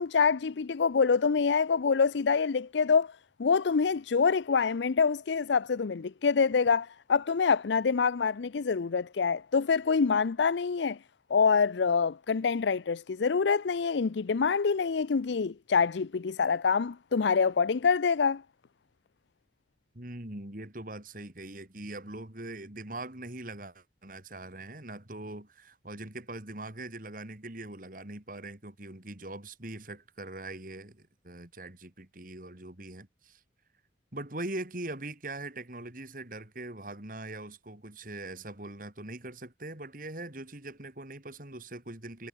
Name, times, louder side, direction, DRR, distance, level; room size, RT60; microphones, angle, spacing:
voice 1, 0.0-11.0 11.3-18.4, left 5 dB, 75° left, 0.5 m, -26 dB
voice 2, 19.9-33.4 34.1-42.3, right 2 dB, 50° right, 2.9 m, -42 dB
head